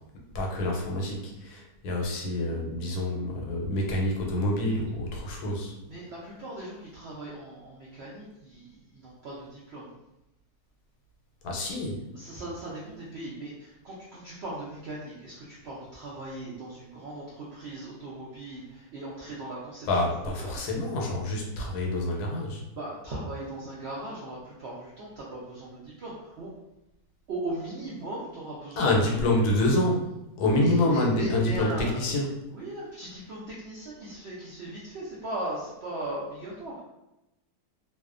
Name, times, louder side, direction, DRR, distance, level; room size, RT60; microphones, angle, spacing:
voice 1, 0.3-5.8 11.4-12.1 19.9-22.6 28.8-30.1 30.4-32.4, left 1 dB, 85° left, -1 dB, 1.1 m, -27 dB
voice 2, 5.9-9.9 12.1-20.6 22.7-26.5 27.3-29.0 30.5-32.1 32.5-36.8, right 1 dB, 75° right, -6 dB, 0.6 m, -38 dB
2.6 x 2.1 x 2.4 m, 0.90 s
omnidirectional pair, 1.7 m